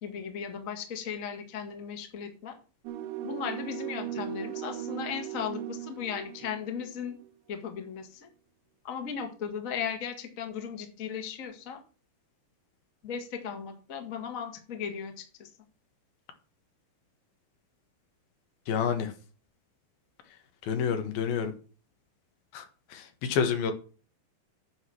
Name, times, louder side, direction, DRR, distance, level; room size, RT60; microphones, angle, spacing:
voice 1, 0.0-2.6 3.2-7.2 7.5-8.3 8.8-11.8 13.0-15.5, left 7 dB, 40° left, 1.1 m, -36 dB
sound 1, 2.9-7.3, right 11 dB, 80° right, 1.8 m, -38 dB
voice 2, 18.7-19.1 20.6-21.5 22.5-23.7, left 7 dB, 85° left, 3.3 m, -29 dB
9.1 x 5.0 x 7.7 m
omnidirectional pair, 4.2 m